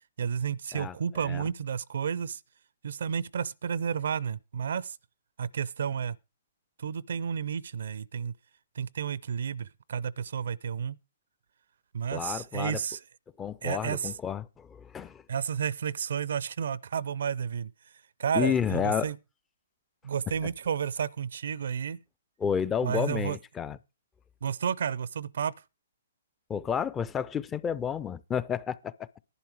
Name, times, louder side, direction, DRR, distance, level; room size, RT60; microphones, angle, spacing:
voice 1, 0.2-2.4 2.8-5.0 5.4-6.2 6.8-8.3 8.7-11.0 11.9-13.0 13.6-14.1 15.3-17.9 18.2-19.2 20.0-22.0 22.8-23.4 24.4-25.5, right 7 dB, 65° right, 0.5 m, -31 dB
voice 2, 12.1-12.8 13.4-15.2 18.3-19.1 22.4-23.8 26.5-29.1, left 8 dB, 15° left, 0.5 m, -31 dB
11.0 x 10.5 x 4.8 m
hypercardioid pair, 130°, 0 cm